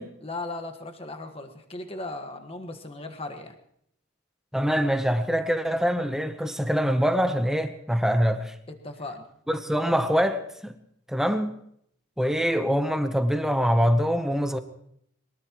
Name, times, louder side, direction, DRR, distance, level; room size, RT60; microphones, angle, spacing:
voice 1, 0.2-3.5 8.8-9.2, left 2 dB, 25° left, 1.6 m, -37 dB
voice 2, 4.5-8.5 9.5-10.7 11.1-11.5 12.2-14.6, equal, ahead, 0.9 m, -24 dB
22.5 x 21.0 x 3.1 m
head